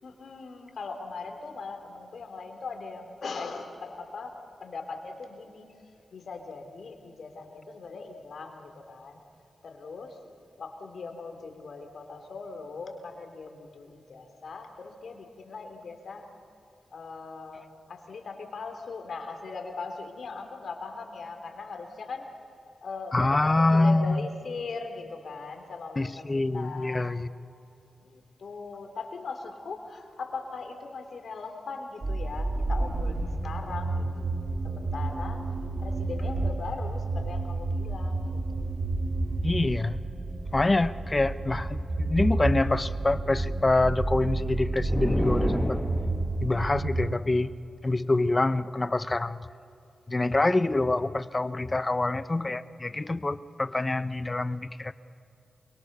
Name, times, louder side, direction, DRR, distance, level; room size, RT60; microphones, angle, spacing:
voice 1, 0.0-5.8 6.1-9.2 9.6-10.2 10.6-16.3 16.9-22.3 22.8-27.1 28.0-34.3 34.6-35.4 35.8-38.7, left 4 dB, 70° left, 4 dB, 3.5 m, -40 dB
voice 2, 23.1-24.2 26.0-27.3 39.4-40.0 40.5-45.9 46.4-47.5 47.8-49.5 50.1-54.9, left 2 dB, 30° left, 14 dB, 1.0 m, -26 dB
sound 1, 32.0-47.1, right 2 dB, 50° right, 2.3 m, -30 dB
sound 2, 44.8-46.4, equal, 5° right, 2.3 m, -30 dB
28.5 x 23.5 x 6.9 m, 2.6 s
cardioid pair, 50°, 0 cm